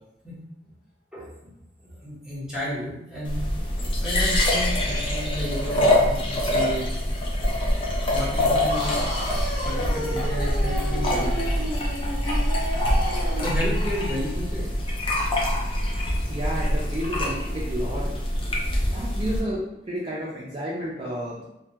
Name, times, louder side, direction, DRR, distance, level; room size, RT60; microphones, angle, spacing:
voice 1, 1.1-1.5 1.8-3.5 4.0-7.1 8.1-9.0 9.6-11.4 13.4-14.7, equal, 5° right, -8 dB, 0.9 m, -32 dB
sound 1, 3.3-19.4, left 1 dB, 30° left, 0.4 m, -25 dB
sound 2, 8.7-13.6, equal, 75° left, 0.8 m, -32 dB
voice 2, 16.3-18.1 18.9-21.4, equal, 30° right, -6 dB, 0.4 m, -31 dB
2.2 x 2.2 x 2.7 m, 0.86 s
head